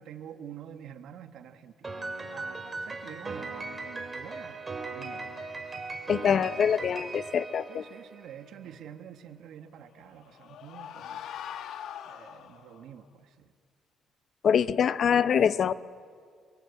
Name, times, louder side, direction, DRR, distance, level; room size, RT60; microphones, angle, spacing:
voice 1, 0.0-1.9 2.3-5.8 7.7-11.2 12.0-13.5, right 9 dB, 75° right, 8 dB, 1.6 m, -47 dB
Piano, 1.8-8.4, right 3 dB, 25° right, 4.2 m, -38 dB
voice 2, 6.1-7.8 14.4-15.7, left 7 dB, 60° left, 14 dB, 0.8 m, -24 dB
sound 1, 9.9-12.8, left 9 dB, 80° left, 1.4 m, -42 dB
29.5 x 22.0 x 8.3 m, 2.1 s
cardioid pair, 90°, 0 cm